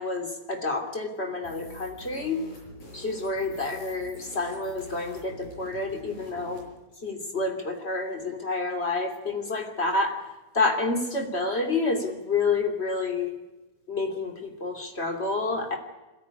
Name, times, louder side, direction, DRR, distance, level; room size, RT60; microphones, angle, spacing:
voice 1, 0.0-2.4 2.9-6.6 7.0-10.2 10.5-13.3 13.9-15.8, left 3 dB, 20° left, 4 dB, 2.2 m, -29 dB
sound 1, 1.4-6.7, left 1 dB, 40° left, 8.3 m, -46 dB
22.0 x 16.5 x 9.8 m, 1.1 s
omnidirectional pair, 5.0 m